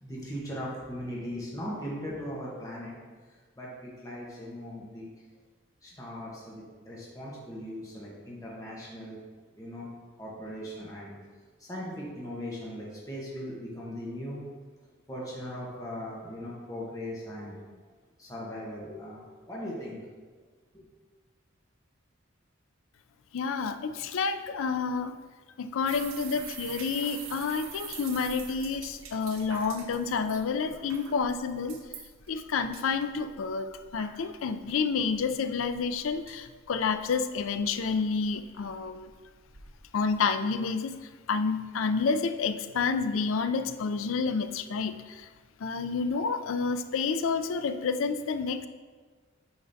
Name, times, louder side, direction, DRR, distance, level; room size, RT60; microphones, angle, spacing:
voice 1, 0.0-3.0 3.3-5.1 5.8-9.2 9.5-9.9 10.2-11.2 11.6-14.5 15.1-17.6 18.2-20.0 20.7-20.8, equal, 15° left, -5 dB, 1.1 m, -39 dB
voice 2, 23.3-25.1 25.6-31.8 32.3-39.1 39.9-41.0 41.3-45.3 45.6-48.7, left 5 dB, 70° left, 10 dB, 0.4 m, -29 dB
sound 1, 25.9-40.2, right 6 dB, 85° right, 0.8 m, -46 dB
8.8 x 5.1 x 2.7 m, 1.4 s
head